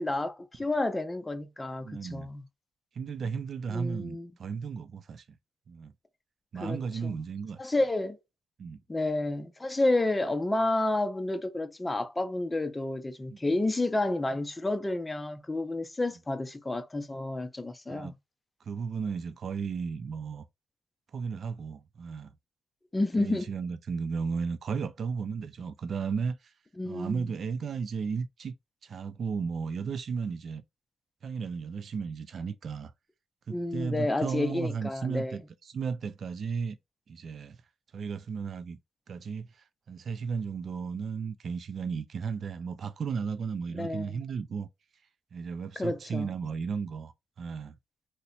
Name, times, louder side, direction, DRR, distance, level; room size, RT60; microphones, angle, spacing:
voice 1, 0.0-2.4 3.7-4.3 6.6-7.2 7.6-8.2 8.9-18.2 22.9-23.5 26.8-27.3 33.5-35.4 43.7-44.2 45.8-46.3, left 2 dB, 15° left, 0.5 m, -30 dB
voice 2, 1.8-2.3 2.9-5.2 5.7-5.9 6.5-7.6 8.6-8.8 13.3-13.4 17.9-18.1 18.6-20.5 21.1-22.3 23.2-26.5 26.9-28.5 28.8-30.6 31.2-32.9 33.5-36.8 37.1-37.6 37.9-38.8 39.1-44.7 45.3-47.8, right 5 dB, 55° right, 0.4 m, -34 dB
2.9 x 2.1 x 3.9 m
cardioid pair, 85°, 0 cm